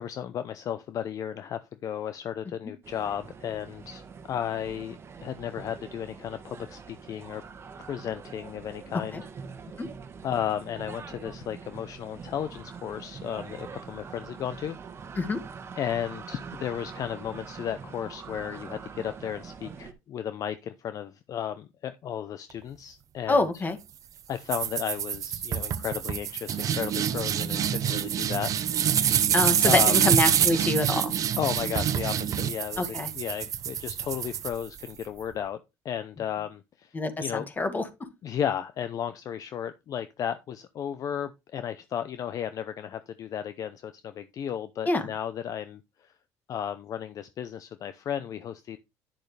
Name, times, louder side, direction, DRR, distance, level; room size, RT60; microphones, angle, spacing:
voice 1, 0.0-7.4 7.8-9.2 10.2-14.8 15.8-23.6 24.3-28.5 29.6-29.9 31.4-35.6 35.8-36.9 37.2-37.5 38.2-46.1 46.5-48.8, left 9 dB, 50° left, 0.7 m, -34 dB
sound 1, 2.8-19.9, right 5 dB, 35° right, 1.4 m, -44 dB
voice 2, 23.3-23.8 29.3-31.1 32.8-33.1 36.9-37.9 44.9-45.0, left 2 dB, 25° left, 1.9 m, -26 dB
sound 2, 24.5-35.0, right 9 dB, 50° right, 0.8 m, -26 dB
10.5 x 6.4 x 3.3 m
supercardioid pair, 95°, 8 cm